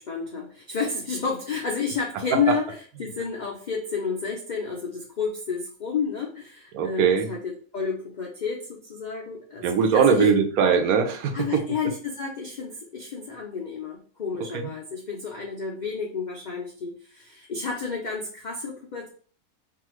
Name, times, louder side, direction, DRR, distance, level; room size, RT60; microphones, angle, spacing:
voice 1, 0.0-10.3 11.3-19.1, left 5 dB, 85° left, -1 dB, 0.4 m, -31 dB
voice 2, 6.7-7.3 9.6-11.4 14.5-14.7, right 6 dB, 85° right, 4 dB, 1.1 m, -20 dB
2.7 x 2.4 x 3.0 m, 0.43 s
omnidirectional pair, 1.5 m